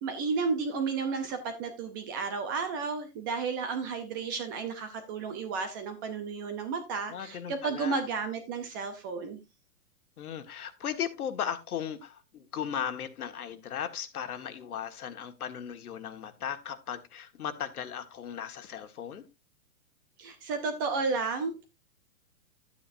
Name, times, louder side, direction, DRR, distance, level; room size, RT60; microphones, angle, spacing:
voice 1, 0.0-9.4 20.2-21.6, right 4 dB, 15° right, 0.5 m, -32 dB
voice 2, 7.1-8.0 10.2-19.3, left 8 dB, 75° left, 1.7 m, -37 dB
11.5 x 8.8 x 2.6 m
hypercardioid pair, 155°, 45 cm